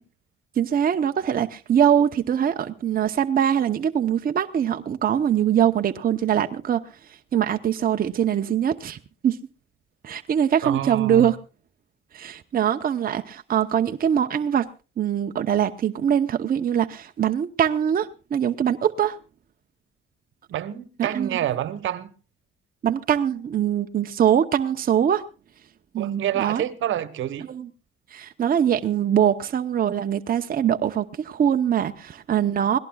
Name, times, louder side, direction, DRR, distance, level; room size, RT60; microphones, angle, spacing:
voice 1, 0.6-6.8 7.3-9.0 9.2-9.4 10.0-11.4 12.1-14.7 15.0-19.2 21.0-21.4 22.8-25.2 25.9-26.6 27.5-27.7 28.1-32.8, right 9 dB, 45° right, 0.9 m, -22 dB
voice 2, 10.6-11.3 20.5-22.1 26.0-27.5, right 11 dB, 80° right, 1.3 m, -28 dB
25.0 x 18.0 x 2.4 m
cardioid pair, 90°, 20 cm